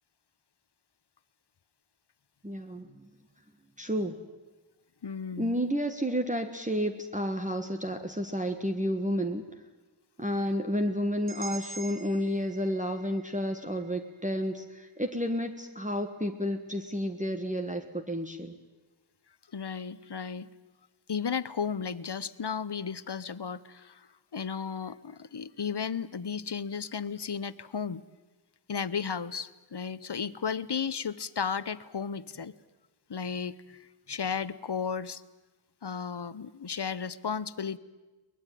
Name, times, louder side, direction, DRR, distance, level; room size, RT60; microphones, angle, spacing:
voice 1, 2.4-3.1 3.8-4.2 5.4-9.4 10.2-18.6, equal, 15° right, 5 dB, 1.5 m, -31 dB
voice 2, 5.0-5.6 19.5-20.5 21.1-28.0 28.7-32.5 33.1-35.2 35.8-37.8, left 6 dB, 55° left, 17 dB, 0.9 m, -34 dB
sound 1, 11.3-15.3, right 3 dB, 80° right, 3.1 m, -47 dB
23.0 x 20.0 x 9.2 m, 1.2 s
wide cardioid pair, 55°, 48 cm